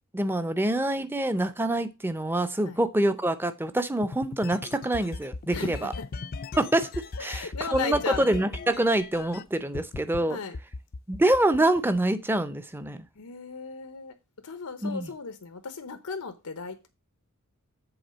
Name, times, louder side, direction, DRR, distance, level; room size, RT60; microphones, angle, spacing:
voice 1, 0.1-5.9 6.6-10.4 11.1-13.1 14.8-15.1, right 1 dB, 10° right, 0.6 m, -26 dB
sound 1, 4.0-9.4 9.7-10.2 10.5-12.0, left 3 dB, 40° left, 0.4 m, -38 dB
voice 2, 5.5-6.1 7.2-8.2 10.3-10.5 13.2-14.1 14.4-16.9, left 5 dB, 90° left, 0.9 m, -36 dB
8.0 x 3.8 x 6.2 m
head